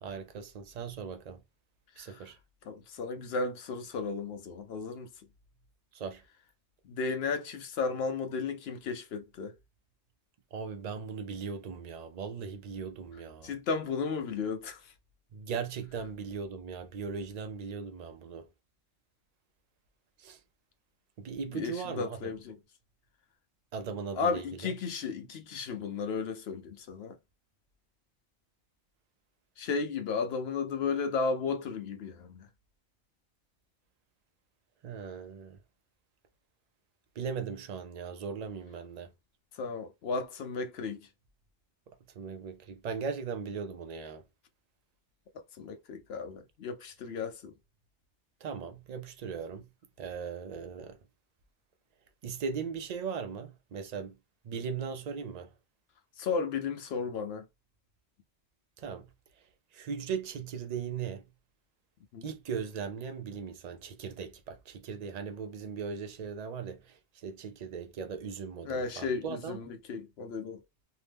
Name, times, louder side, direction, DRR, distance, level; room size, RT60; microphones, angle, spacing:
voice 1, 0.0-1.4 2.0-2.4 5.9-6.2 10.5-13.5 15.3-18.5 20.2-20.4 21.2-22.4 23.7-24.7 34.8-35.6 37.2-39.1 41.9-44.2 48.4-49.7 50.0-51.0 52.2-54.2 54.4-55.5 58.8-59.1 59.7-61.2 62.2-69.6, right 6 dB, 60° right, 0.4 m, -38 dB
voice 2, 2.0-2.3 2.7-5.1 6.8-9.5 13.4-14.9 21.5-22.6 24.1-27.1 29.6-32.5 39.6-41.1 45.6-47.5 56.2-57.4 62.1-62.3 68.6-70.6, left 4 dB, 70° left, 0.7 m, -34 dB
2.8 x 2.1 x 3.3 m
omnidirectional pair, 1.2 m